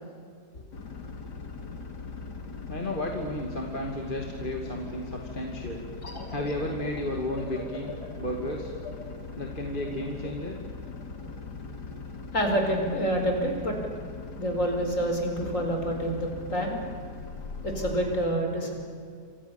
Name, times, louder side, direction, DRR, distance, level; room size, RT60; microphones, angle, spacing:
sound 1, 0.7-18.2, left 4 dB, 85° left, 2.8 m, -40 dB
voice 1, 2.7-5.9 6.3-7.9 8.2-8.7 9.4-10.6, left 1 dB, 30° left, 1 dB, 2.6 m, -33 dB
sound 2, 6.0-11.3, left 2 dB, 65° left, 4.4 m, -43 dB
voice 2, 12.3-13.8 14.4-16.8 17.6-18.7, right 1 dB, 50° left, 3 dB, 5.3 m, -27 dB
27.5 x 26.5 x 7.1 m, 2.2 s
omnidirectional pair, 1.8 m